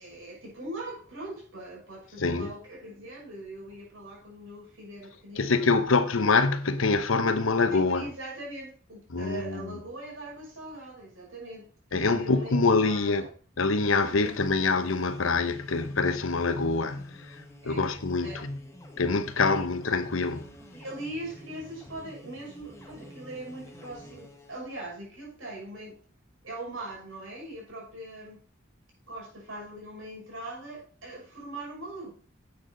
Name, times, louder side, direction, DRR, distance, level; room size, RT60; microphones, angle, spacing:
voice 1, 0.0-5.5 7.7-13.3 14.2-14.3 17.6-17.9 18.2-18.4 19.3-19.7 20.7-26.0 26.4-28.4 29.1-32.1, right 1 dB, 80° right, 5.9 m, -41 dB
voice 2, 2.2-2.5 5.4-8.1 9.1-9.8 11.9-13.3 13.6-18.6 19.0-20.4, left 3 dB, 90° left, 1.0 m, -25 dB
sound 1, 13.7-24.7, left 1 dB, 15° left, 1.4 m, -49 dB
10.5 x 8.5 x 4.0 m
head